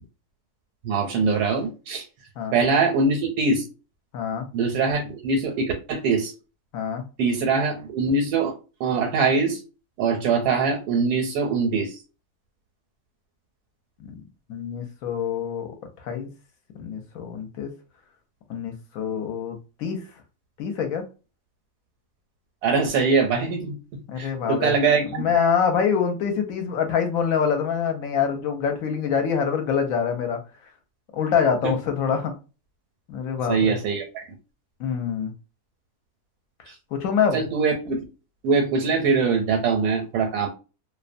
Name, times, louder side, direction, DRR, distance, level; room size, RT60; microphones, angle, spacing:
voice 1, 0.8-2.0 2.5-3.6 4.5-6.3 7.2-8.5 8.8-9.6 10.0-11.9 22.6-23.8 24.2-25.2 31.6-31.7 33.5-34.3 37.3-38.1 38.4-40.5, right 4 dB, 85° right, 2 dB, 1.1 m, -22 dB
voice 2, 4.1-4.5 6.7-7.1 14.0-14.1 14.5-15.7 16.0-16.3 16.8-17.7 18.5-20.0 20.6-21.0 24.1-24.7 25.1-30.4 31.1-32.3 33.1-33.8 34.8-35.3 36.9-37.4, left 7 dB, 70° left, 5 dB, 1.0 m, -25 dB
2.6 x 2.1 x 2.5 m, 0.32 s
omnidirectional pair, 1.6 m